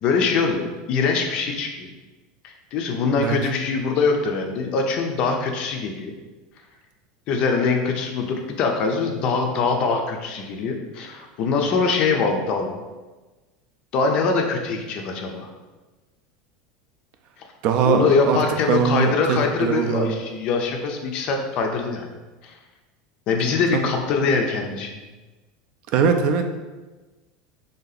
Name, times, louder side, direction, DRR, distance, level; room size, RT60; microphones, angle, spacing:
voice 1, 0.0-1.9 2.4-6.1 7.3-12.8 13.9-15.5 17.9-22.1 22.4-22.6 23.3-24.9, left 4 dB, 40° left, 3 dB, 0.4 m, -23 dB
voice 2, 17.6-18.4 18.7-20.2 23.7-23.9 25.9-26.5, right 6 dB, 45° right, 6 dB, 0.4 m, -21 dB
3.4 x 2.7 x 3.9 m, 1.2 s
supercardioid pair, 170°, 2 cm